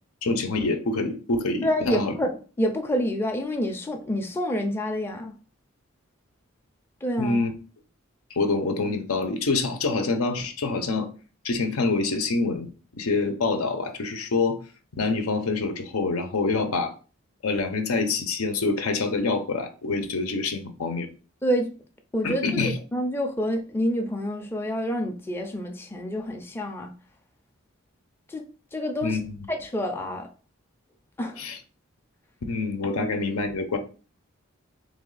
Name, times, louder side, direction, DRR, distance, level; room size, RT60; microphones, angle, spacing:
voice 1, 0.2-2.1 7.2-7.5 8.3-11.1 11.4-12.7 12.9-14.6 15.0-16.9 17.4-21.1 22.2-22.8 29.0-29.4 31.4-31.6 32.5-33.8, left 3 dB, 90° left, 0.7 m, -26 dB
voice 2, 1.6-5.3 7.0-7.5 21.4-21.7 22.1-26.9 28.3-28.5 28.7-29.2 29.5-30.3 31.2-31.5, equal, 10° left, 0.4 m, -28 dB
3.4 x 3.1 x 3.9 m
head